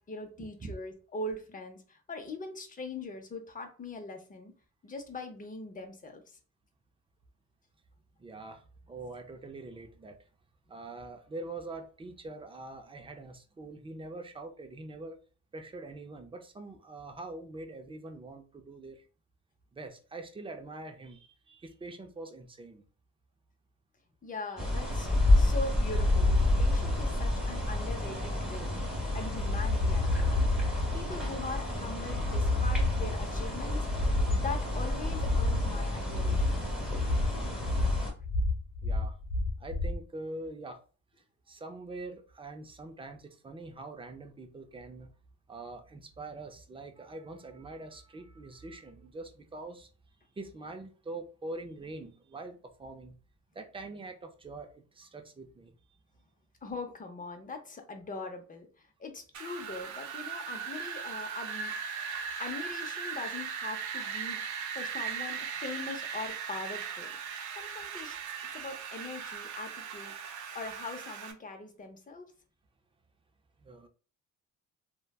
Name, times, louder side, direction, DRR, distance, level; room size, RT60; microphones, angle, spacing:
voice 1, 0.1-4.5 4.8-6.4 24.2-28.8 29.1-36.6 37.3-37.5 56.6-61.7 62.4-67.2 67.6-68.2 68.5-72.3, left 3 dB, 25° left, 0.7 m, -41 dB
voice 2, 8.2-10.2 10.7-15.2 15.5-19.1 19.7-22.8 38.8-39.2 39.6-40.8 41.5-45.1 45.5-49.9 50.4-53.2 53.5-55.7 73.6-73.9, right 2 dB, 20° right, 0.5 m, -44 dB
sound 1, 24.6-38.1, left 1 dB, 5° right, 1.2 m, -31 dB
sound 2, 25.1-40.0, left 2 dB, 80° left, 0.7 m, -30 dB
Wind, 59.3-71.3, right 6 dB, 75° right, 0.6 m, -38 dB
3.1 x 2.2 x 2.2 m
cardioid pair, 90°, 30 cm